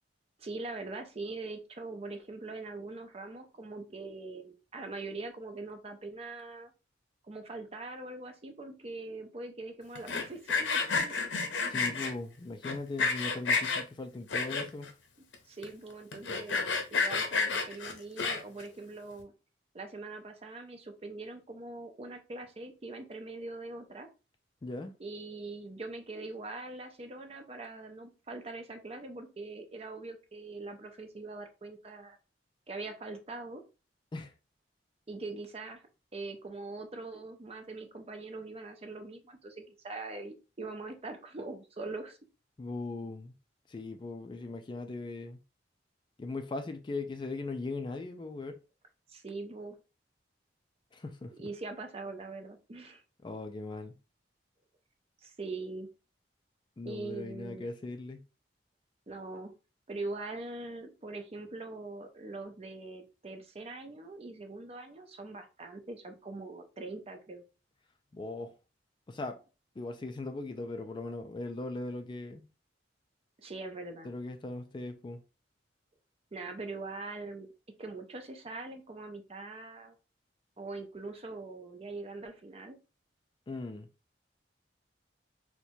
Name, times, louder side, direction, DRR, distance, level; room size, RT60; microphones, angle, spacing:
voice 1, 0.4-6.7 7.3-11.1 15.5-19.3 19.7-24.1 25.0-32.2 32.7-33.6 35.1-35.8 36.1-42.2 49.1-49.8 51.4-53.0 55.2-55.9 56.8-57.6 59.1-59.5 59.9-67.4 73.4-74.1 76.3-77.5 77.8-79.9 80.6-82.8, right 3 dB, 35° right, 0.5 m, -42 dB
Sawing, 10.0-12.1 12.6-13.8 14.3-14.9 15.3-15.4 15.6-15.7 16.1-18.6, left 4 dB, 90° left, 0.6 m, -30 dB
voice 2, 11.7-14.9 24.6-24.9 34.1-34.3 42.6-43.3 43.7-45.4 46.2-48.6 50.9-51.3 53.2-54.0 56.8-58.2 68.1-68.5 69.1-69.4 69.8-72.5 74.0-75.2 83.5-83.9, left 2 dB, 25° left, 0.3 m, -39 dB
4.3 x 2.1 x 2.7 m
head